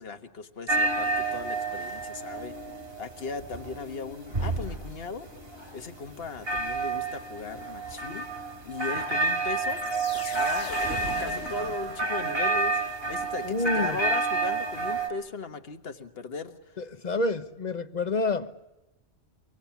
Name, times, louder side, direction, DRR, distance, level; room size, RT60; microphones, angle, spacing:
voice 1, 0.0-2.7 3.0-5.3 5.7-8.2 8.6-9.8 10.1-16.8, left 4 dB, 60° left, 1.7 m, -38 dB
sound 1, 0.7-15.1, right 3 dB, 55° right, 3.9 m, -30 dB
sound 2, 9.7-12.5, left 5 dB, 85° left, 2.1 m, -40 dB
voice 2, 13.4-14.0 16.8-18.5, left 2 dB, 40° left, 1.1 m, -28 dB
25.5 x 24.5 x 7.0 m
omnidirectional pair, 1.2 m